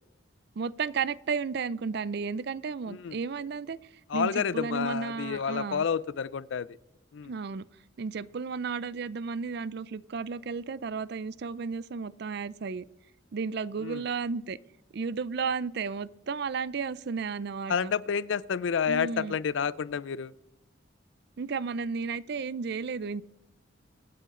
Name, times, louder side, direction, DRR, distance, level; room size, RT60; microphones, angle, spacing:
voice 1, 0.6-3.8 4.1-5.9 7.2-7.6 8.0-12.8 13.3-14.6 14.9-17.9 18.9-19.4 21.4-23.2, right 5 dB, 55° right, 0.4 m, -33 dB
voice 2, 4.1-6.8 7.1-7.3 13.8-14.0 17.7-20.3, left 6 dB, 70° left, 0.4 m, -29 dB
24.5 x 8.4 x 3.7 m
head